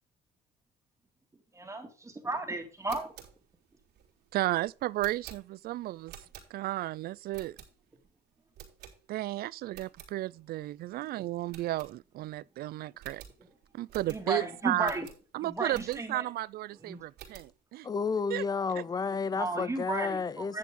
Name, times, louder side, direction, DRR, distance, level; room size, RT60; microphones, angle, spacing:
voice 1, 1.5-3.1 14.1-15.1 15.4-16.2 16.8-17.0 19.3-20.6, right 2 dB, 15° right, 2.2 m, -34 dB
sound 1, 2.7-6.9 7.3-8.1 8.5-9.3 9.6-10.1 10.6-10.7 10.9-11.0 11.5-12.4 12.6-12.7 13.0-16.3 16.7-17.6, right 9 dB, 80° right, 3.6 m, -51 dB
voice 2, 4.3-6.1 6.5-7.6 9.1-13.2 13.7-14.9 15.3-17.9 18.3-18.4 18.7-18.8, right 16 dB, 65° right, 0.4 m, -33 dB
voice 3, 17.8-20.6, left 5 dB, 25° left, 0.5 m, -31 dB
10.5 x 7.3 x 3.7 m
cardioid pair, 110°, 17 cm